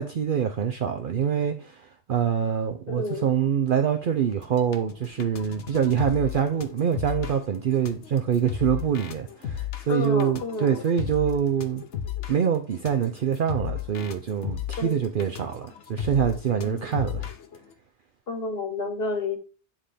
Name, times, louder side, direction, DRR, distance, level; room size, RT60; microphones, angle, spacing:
voice 1, 0.0-11.8 12.3-17.3, right 8 dB, 60° right, 0.7 m, -25 dB
voice 2, 2.9-3.3 9.9-10.8 14.8-15.0 16.6-16.9 18.3-19.4, left 3 dB, 60° left, 1.3 m, -30 dB
sound 1, 4.3-17.6, left 9 dB, 85° left, 1.1 m, -35 dB
9.7 x 3.6 x 3.3 m
omnidirectional pair, 1.1 m